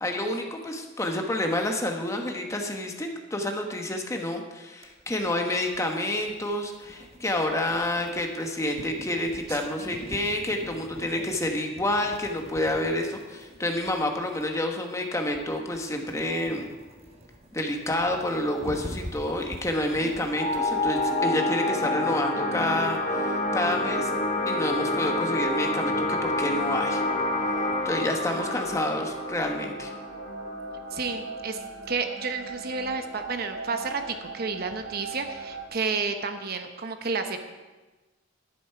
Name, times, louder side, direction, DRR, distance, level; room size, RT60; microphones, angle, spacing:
voice 1, 0.0-16.7 17.5-24.1 24.5-27.0 27.8-29.9, left 1 dB, 15° left, 3 dB, 1.2 m, -29 dB
sound 1, 4.8-21.1, equal, 35° right, 1.4 m, -45 dB
voice 2, 9.5-10.1 20.0-20.3 28.3-28.7 30.9-31.6 31.9-37.4, right 4 dB, 55° right, 7 dB, 0.9 m, -31 dB
sound 2, 20.3-31.4, left 2 dB, 40° left, 1.7 m, -28 dB
sound 3, 22.2-35.7, right 3 dB, 75° right, 1.1 m, -41 dB
11.5 x 10.5 x 4.6 m, 1.2 s
head